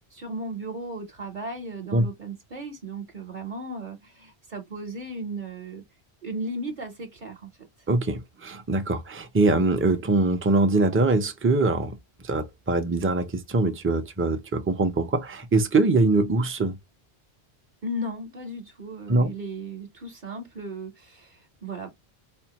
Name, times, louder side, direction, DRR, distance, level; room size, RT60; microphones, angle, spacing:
voice 1, 0.1-5.8 6.2-7.5 17.8-21.9, right 1 dB, 50° right, 0.9 m, -36 dB
voice 2, 7.9-11.9 12.2-16.7 19.1-19.3, right 2 dB, 20° right, 0.4 m, -23 dB
4.3 x 2.0 x 2.8 m
omnidirectional pair, 1.1 m